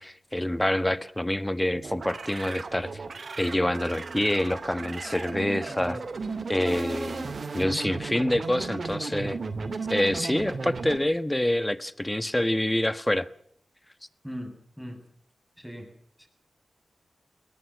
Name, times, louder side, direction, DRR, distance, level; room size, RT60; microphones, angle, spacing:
voice 1, 0.0-3.0 3.4-6.0 6.5-9.4 9.9-13.3, left 1 dB, 15° left, 1.3 m, -27 dB
sound 1, 1.7-11.0, right 4 dB, 65° right, 2.4 m, -35 dB
voice 2, 5.7-6.0 14.2-15.0 15.6-15.9 16.2-16.3, equal, ahead, 7.9 m, -39 dB
22.5 x 19.0 x 7.2 m
cardioid pair, 50°, 0 cm